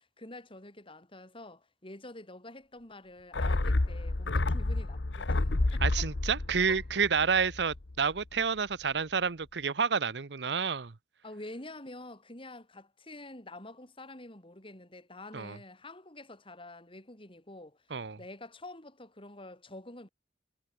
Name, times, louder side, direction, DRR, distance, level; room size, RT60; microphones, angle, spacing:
voice 1, 0.0-6.1 6.7-6.8 7.2-7.3 11.2-17.9 18.2-20.1, left 2 dB, 30° left, 6.4 m, -47 dB
sound 1, 3.3-7.9 8.2-8.3, left 2 dB, 85° left, 1.1 m, -30 dB
voice 2, 5.8-10.9 15.3-15.6 17.9-18.2, right 6 dB, 70° right, 0.8 m, -29 dB
head